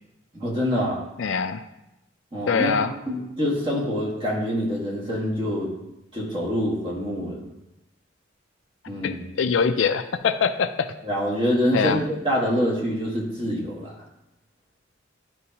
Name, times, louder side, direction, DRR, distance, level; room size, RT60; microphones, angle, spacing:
voice 1, 0.3-1.0 2.3-2.7 3.1-5.7 6.1-7.4 8.9-9.3 11.0-13.9, equal, 25° right, -4 dB, 1.8 m, -25 dB
voice 2, 1.2-1.6 2.5-2.9 9.0-10.9 11.7-12.0, left 6 dB, 70° left, 9 dB, 0.4 m, -23 dB
11.0 x 4.5 x 2.9 m, 0.90 s
head